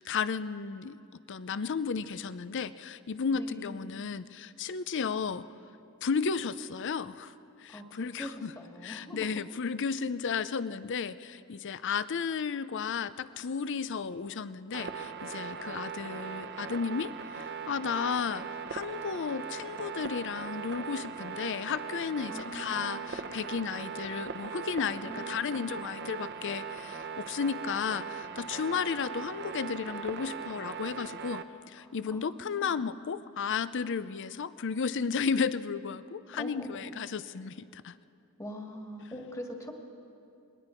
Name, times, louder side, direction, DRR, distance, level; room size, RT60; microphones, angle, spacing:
voice 1, 0.0-5.5 6.0-7.3 7.6-8.5 8.8-37.9, left 6 dB, 55° left, 15 dB, 0.5 m, -33 dB
voice 2, 3.3-3.9 7.7-9.3 22.3-23.2 25.0-25.9 31.8-33.0 36.3-36.9 38.4-39.7, equal, 15° left, 1 dB, 1.9 m, -43 dB
sound 1, 14.7-31.4, right 6 dB, 50° right, 0.9 m, -40 dB
27.5 x 21.0 x 4.5 m, 2.6 s
head